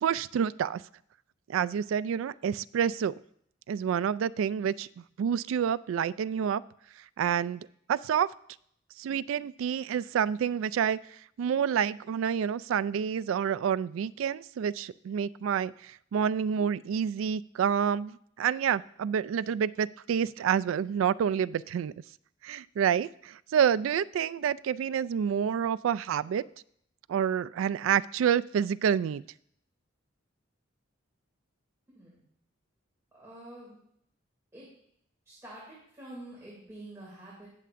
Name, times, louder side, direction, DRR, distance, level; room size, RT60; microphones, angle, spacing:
voice 1, 0.0-0.8 1.5-3.1 3.7-6.6 7.2-8.3 9.0-11.0 11.4-21.9 22.4-26.4 27.1-29.2, right 8 dB, 75° right, 18 dB, 0.3 m, -28 dB
voice 2, 33.1-33.8 34.5-34.7 35.2-37.5, right 1 dB, 15° right, -6 dB, 2.6 m, -47 dB
18.5 x 6.7 x 2.5 m, 0.68 s
head